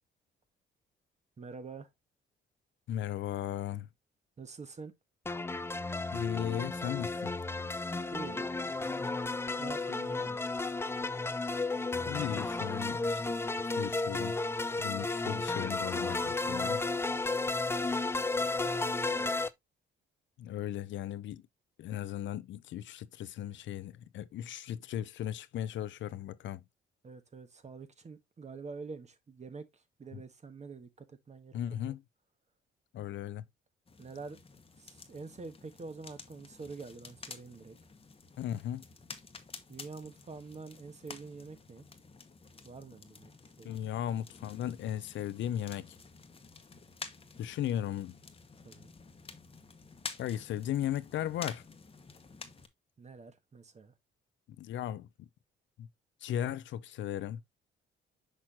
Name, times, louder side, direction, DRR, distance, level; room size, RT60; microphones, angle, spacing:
voice 1, 1.4-1.9 4.4-4.9 8.1-8.5 9.6-10.4 18.7-19.4 27.0-31.6 31.9-32.0 34.0-34.4 34.8-37.8 39.7-41.9 42.6-43.9 48.6-48.9 53.0-53.9, right 4 dB, 35° right, 1.4 m, -46 dB
voice 2, 2.9-3.9 6.1-7.3 12.1-13.2 13.6-14.4 14.8-16.8 20.4-21.4 21.8-26.6 30.1-30.2 31.5-32.0 32.9-33.4 38.4-38.8 43.6-46.0 47.4-48.2 50.2-51.6 54.6-55.3 55.8-55.9 56.2-57.4, left 11 dB, 70° left, 0.6 m, -36 dB
sound 1, 5.3-19.5, left 3 dB, 10° left, 0.5 m, -33 dB
sound 2, 33.9-52.7, left 4 dB, 30° left, 1.1 m, -50 dB
6.1 x 6.0 x 2.8 m
cardioid pair, 90°, 20 cm